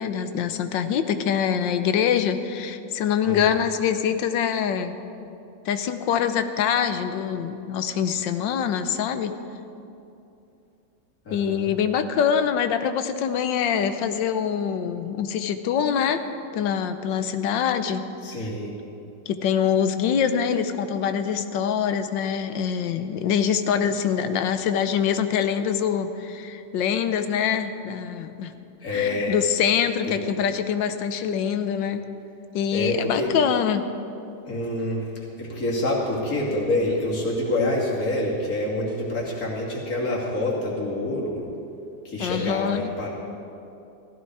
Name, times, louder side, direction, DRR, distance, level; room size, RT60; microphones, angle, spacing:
voice 1, 0.0-5.0 5.6-9.4 11.3-16.2 16.5-18.1 18.4-18.5 19.3-28.5 28.9-32.1 32.5-33.9 42.2-42.8, left 8 dB, 90° left, 9 dB, 1.5 m, -24 dB
voice 2, 11.2-11.7 18.2-18.7 28.8-29.3 32.7-33.3 34.4-35.0 35.4-41.5 42.0-43.1, left 1 dB, 50° left, -4 dB, 3.0 m, -27 dB
16.5 x 15.0 x 4.8 m, 2.8 s
omnidirectional pair, 1.9 m